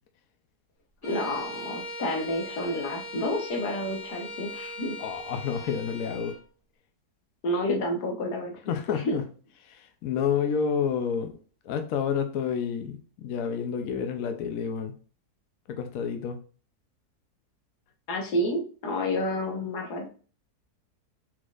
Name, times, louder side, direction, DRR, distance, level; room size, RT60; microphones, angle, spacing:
voice 1, 1.0-4.9 7.4-8.5 8.9-9.2 18.1-20.1, left 1 dB, 90° left, 1.7 m, -29 dB
Bowed string instrument, 1.0-6.4, left 1 dB, 50° left, 2.0 m, -39 dB
voice 2, 5.0-6.3 8.7-9.2 9.7-11.3 11.7-14.9 15.7-16.4, left 7 dB, 70° left, 1.0 m, -29 dB
4.4 x 4.3 x 2.4 m
omnidirectional pair, 1.7 m